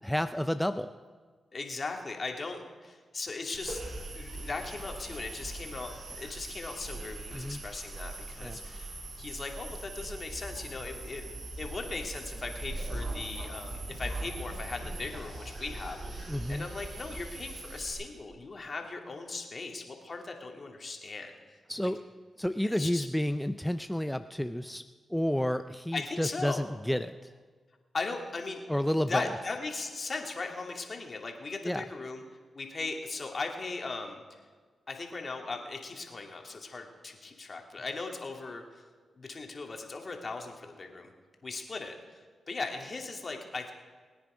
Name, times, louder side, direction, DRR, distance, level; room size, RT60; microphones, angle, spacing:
voice 1, 0.0-0.9 7.3-7.6 8.4-8.6 16.3-16.7 21.7-22.0 22.4-24.8 25.1-27.3 28.7-29.3 31.6-31.8, equal, 5° left, 10 dB, 0.5 m, -30 dB
voice 2, 1.5-3.8 4.1-11.2 11.6-21.9 22.6-23.1 25.9-26.6 27.9-28.6 29.1-32.2 32.5-34.4 34.9-38.8 39.2-41.1 41.4-43.7, left 3 dB, 50° left, 2 dB, 2.4 m, -38 dB
sound 1, 3.5-17.9, right 2 dB, 70° right, 5.7 m, -40 dB
21.5 x 9.5 x 5.0 m, 1.5 s
supercardioid pair, 50°, 0 cm